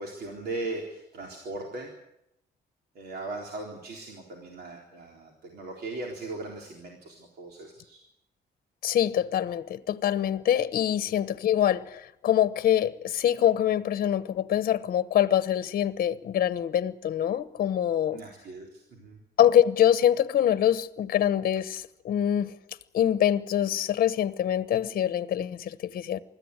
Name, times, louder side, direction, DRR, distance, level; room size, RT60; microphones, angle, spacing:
voice 1, 0.0-1.9 2.9-8.0 11.0-11.1 18.1-19.2, right 2 dB, 70° right, 4.0 m, -38 dB
voice 2, 8.8-18.2 19.4-22.6 22.9-26.2, left 10 dB, 60° left, 1.0 m, -25 dB
25.0 x 14.0 x 9.8 m
cardioid pair, 170°, 17 cm